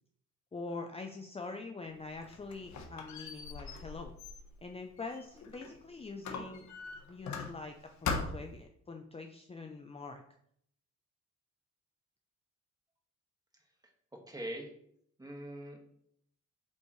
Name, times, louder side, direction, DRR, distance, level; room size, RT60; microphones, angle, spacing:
voice 1, 0.5-4.1 4.6-6.7 7.1-10.2, left 3 dB, 20° left, 4 dB, 0.7 m, -44 dB
Squeak, 2.0-5.8 6.2-7.8 8.0-8.6, left 4 dB, 70° left, 1.3 m, -40 dB
voice 2, 14.1-14.7 15.2-15.8, right 1 dB, 10° right, 2 dB, 1.8 m, -42 dB
8.2 x 5.3 x 3.2 m, 0.69 s
cardioid pair, 90°, 30 cm